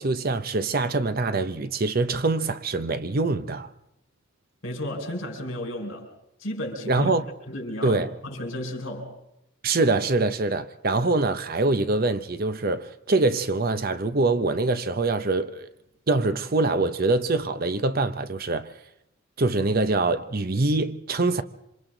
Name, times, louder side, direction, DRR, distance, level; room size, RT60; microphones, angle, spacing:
voice 1, 0.0-3.7 6.9-7.2 7.8-8.1 9.6-15.7 16.1-18.7 19.4-21.4, right 3 dB, 45° right, 0.8 m, -24 dB
voice 2, 4.6-6.1 6.4-7.1 7.5-9.1, left 1 dB, 65° left, 5.2 m, -33 dB
27.0 x 26.0 x 3.9 m
head